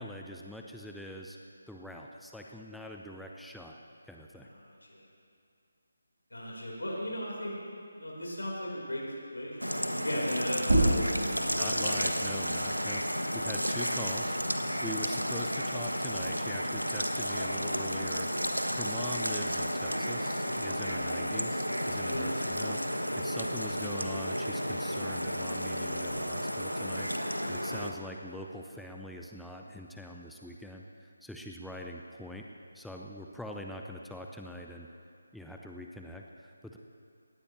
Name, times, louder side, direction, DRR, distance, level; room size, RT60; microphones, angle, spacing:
voice 1, 0.0-1.4 1.7-3.8 4.1-4.5 11.6-32.5 32.7-34.9 35.3-36.8, equal, ahead, 0 dB, 0.5 m, -43 dB
voice 2, 4.6-5.1 6.3-7.5 8.0-9.0 9.3-12.0 22.0-22.3, left 1 dB, 70° left, -4 dB, 4.4 m, -37 dB
sound 1, 9.6-27.9, equal, 90° right, 1.3 m, -32 dB
sound 2, 10.6-15.8 16.2-18.0, right 1 dB, 65° right, 4.5 m, -33 dB
19.5 x 16.5 x 3.3 m, 2.4 s
figure-of-eight pair, 155°, 0 cm